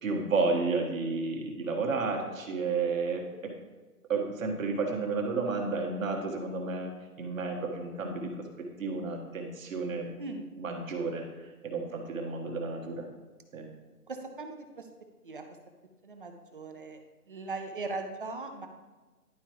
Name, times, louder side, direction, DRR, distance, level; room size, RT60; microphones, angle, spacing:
voice 1, 0.0-3.5 4.1-6.9 7.2-8.3 8.8-10.1 10.6-11.2 11.6-13.0 13.5-13.7, right 4 dB, 55° right, 1 dB, 1.6 m, -31 dB
voice 2, 16.0-17.0 17.3-18.7, right 3 dB, 35° right, 5 dB, 0.6 m, -38 dB
11.0 x 4.6 x 3.0 m, 1.2 s
hypercardioid pair, 165°, 47 cm